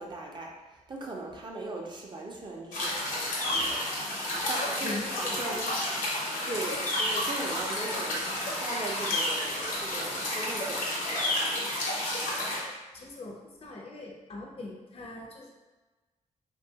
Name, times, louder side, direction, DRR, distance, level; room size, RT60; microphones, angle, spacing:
voice 1, 0.0-3.8 4.3-6.0 6.4-11.6, right 2 dB, 35° right, -1 dB, 0.5 m, -39 dB
sound 1, 2.7-12.6, left 1 dB, 85° left, 0.8 m, -31 dB
voice 2, 4.8-5.8 12.9-15.5, left 2 dB, 45° left, 0 dB, 0.5 m, -41 dB
2.9 x 2.3 x 2.7 m, 1.2 s
cardioid pair, 100°, 14 cm